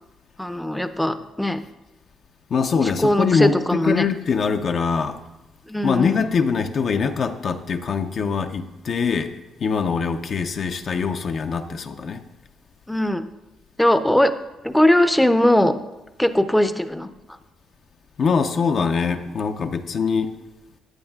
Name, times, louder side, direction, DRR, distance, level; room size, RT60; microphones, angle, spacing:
voice 1, 0.4-1.6 2.8-4.0 5.7-6.3 12.9-13.2 13.8-14.3 14.6-15.7 16.2-17.1, left 1 dB, 5° left, 0.5 m, -19 dB
voice 2, 2.5-5.2 5.8-9.3 9.6-12.2 18.2-20.3, left 5 dB, 55° left, 0.5 m, -23 dB
14.0 x 8.6 x 2.3 m
cardioid pair, 90°, 0 cm